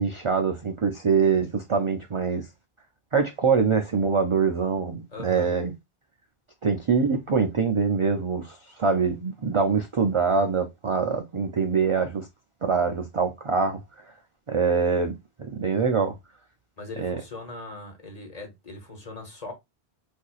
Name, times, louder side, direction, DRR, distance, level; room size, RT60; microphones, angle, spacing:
voice 1, 0.0-2.5 3.1-5.7 6.6-12.3 12.6-13.8 14.5-16.2 17.0-17.2, right 5 dB, 55° right, 0.3 m, -24 dB
voice 2, 5.1-5.5 16.8-19.5, left 2 dB, 40° left, 1.1 m, -39 dB
4.2 x 2.6 x 2.3 m
omnidirectional pair, 1.1 m